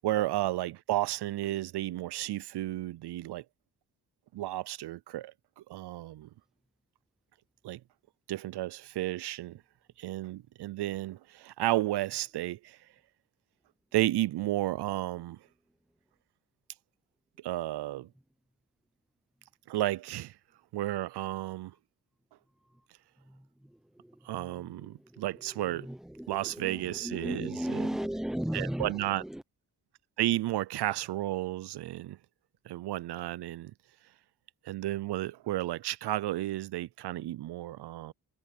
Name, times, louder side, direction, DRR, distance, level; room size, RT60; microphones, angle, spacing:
voice 1, 0.0-3.4 4.3-6.3 7.6-7.8 8.3-9.6 10.0-12.8 13.9-15.4 17.4-18.1 19.7-20.4 20.7-21.7 24.2-25.9 26.3-27.6 28.5-29.2 30.2-32.2 32.7-33.7 34.6-38.1, right 15 dB, 85° right, 0.5 m, -32 dB
voice 2, 23.2-29.4, equal, ahead, 0.9 m, -37 dB
wide cardioid pair, 135°, 39 cm